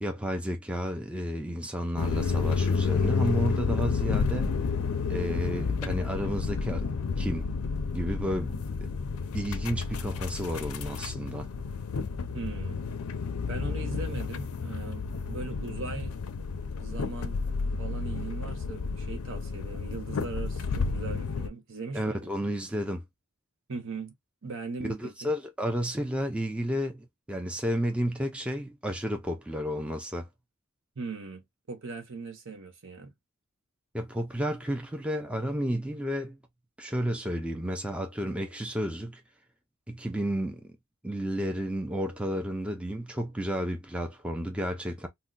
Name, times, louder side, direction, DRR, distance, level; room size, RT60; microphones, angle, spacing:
voice 1, 0.0-4.5 5.1-7.5 7.9-8.6 9.3-11.5 21.9-23.0 24.8-30.3 33.9-36.4 36.8-39.2 39.9-40.7 41.0-45.1, equal, 5° right, 0.4 m, -32 dB
sound 1, 2.0-21.5, left 5 dB, 75° left, 0.5 m, -31 dB
voice 2, 12.3-12.8 13.5-16.2 16.8-17.4 17.8-22.3 23.7-24.1 24.4-25.3 31.0-33.1, right 4 dB, 60° right, 0.8 m, -39 dB
2.7 x 2.1 x 3.7 m
head